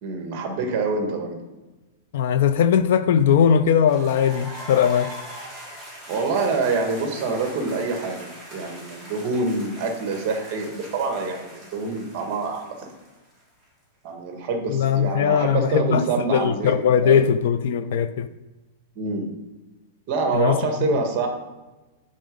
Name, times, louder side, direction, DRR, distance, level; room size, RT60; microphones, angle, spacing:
voice 1, 0.0-1.4 6.1-12.9 14.0-17.2 18.9-19.3 20.1-21.3, right 3 dB, 30° right, 1.4 m, -26 dB
voice 2, 2.1-5.1 14.7-16.0 16.3-18.3 20.3-20.6, left 8 dB, 50° left, 0.4 m, -19 dB
sound 1, 3.9-13.6, right 1 dB, ahead, 1.8 m, -41 dB
10.0 x 3.7 x 5.2 m
supercardioid pair, 175°, 0 cm